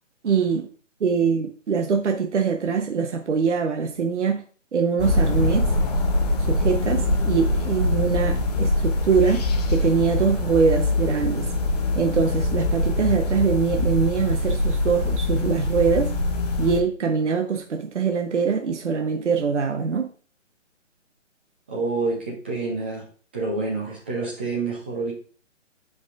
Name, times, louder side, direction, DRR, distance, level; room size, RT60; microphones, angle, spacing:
voice 1, 0.2-0.7 1.0-4.4 4.7-5.7 6.5-9.4 9.7-11.5 12.0-16.1 16.6-20.1, right 6 dB, 65° right, 5 dB, 1.0 m, -23 dB
sound 1, 5.0-16.8, left 2 dB, 35° left, 0.9 m, -23 dB
voice 2, 21.7-23.0 23.3-25.1, right 3 dB, 10° right, -3 dB, 0.6 m, -27 dB
11.0 x 5.1 x 2.5 m, 0.41 s
hypercardioid pair, 155°, 37 cm